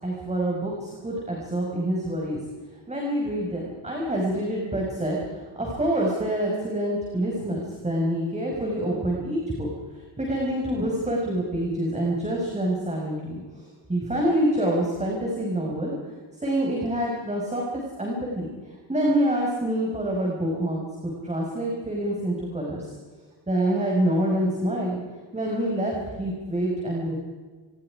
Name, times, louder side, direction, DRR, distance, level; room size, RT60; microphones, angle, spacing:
voice 1, 0.0-2.4 2.9-9.7 9.9-15.9 16.4-18.5 18.9-22.9 23.5-25.0 25.3-27.1, right 1 dB, 15° right, -2 dB, 5.7 m, -26 dB
29.5 x 23.5 x 5.0 m, 1.5 s
cardioid pair, 130°, 44 cm